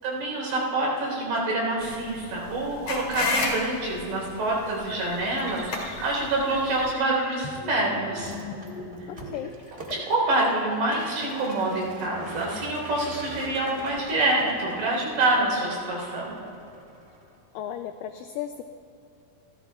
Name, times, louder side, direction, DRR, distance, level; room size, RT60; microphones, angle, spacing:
voice 1, 0.0-8.3 9.9-16.4, right 2 dB, 80° right, -2 dB, 6.0 m, -26 dB
sound 1, 1.8-6.9, left 3 dB, 45° left, 3.4 m, -33 dB
sound 2, 4.9-15.1, left 2 dB, 15° left, 1.4 m, -42 dB
Vehicle, 8.2-17.4, right 1 dB, 45° right, 0.8 m, -44 dB
voice 2, 9.1-9.5 17.5-18.6, left 10 dB, 90° left, 7 dB, 1.9 m, -35 dB
28.5 x 14.0 x 2.4 m, 2.8 s
omnidirectional pair, 4.5 m